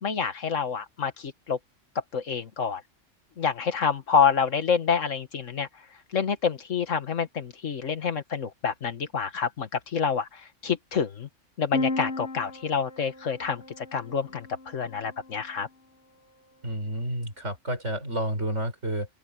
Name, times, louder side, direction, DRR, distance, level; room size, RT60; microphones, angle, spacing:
voice 1, 0.0-1.6 2.1-2.8 3.4-5.7 6.1-11.3 11.6-15.7, left 6 dB, 85° left, 1.9 m, -27 dB
sound 1, 11.7-15.5, left 2 dB, 70° left, 2.1 m, -35 dB
voice 2, 16.6-19.1, right 1 dB, 70° right, 7.4 m, -30 dB
open air
omnidirectional pair, 1.3 m